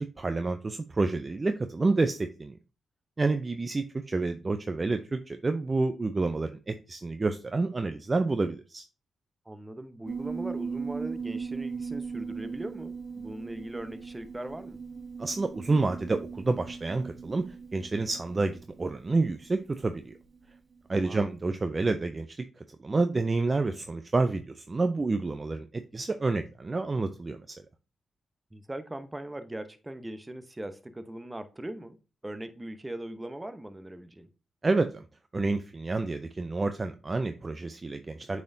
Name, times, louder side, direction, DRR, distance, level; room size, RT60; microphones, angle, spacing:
voice 1, 0.0-2.6 3.2-8.8 15.2-17.5 17.7-20.1 20.9-22.4 22.8-27.6 34.6-35.0 35.3-38.4, right 3 dB, 30° right, 0.5 m, -29 dB
voice 2, 9.5-14.8 20.9-21.4 28.5-32.0 32.2-34.3, right 1 dB, 15° right, 0.8 m, -40 dB
Piano, 10.1-20.8, right 5 dB, 55° right, 1.7 m, -39 dB
8.4 x 4.2 x 2.7 m
cardioid pair, 70°, 0 cm